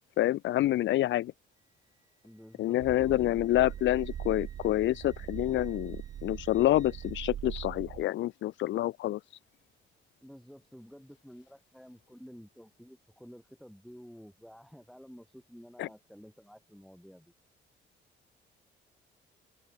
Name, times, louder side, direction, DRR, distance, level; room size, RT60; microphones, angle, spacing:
voice 1, 0.2-1.3 2.6-9.2 15.8-15.9, left 14 dB, 70° left, 0.5 m, -27 dB
Wind instrument woodwind instrument, 1.5-7.3, right 2 dB, 20° right, 7.3 m, -63 dB
voice 2, 2.2-3.6 10.2-17.3, equal, ahead, 5.3 m, -52 dB
sound 1, 2.8-8.0, right 10 dB, 65° right, 3.1 m, -41 dB
open air
cardioid pair, 90°, 20 cm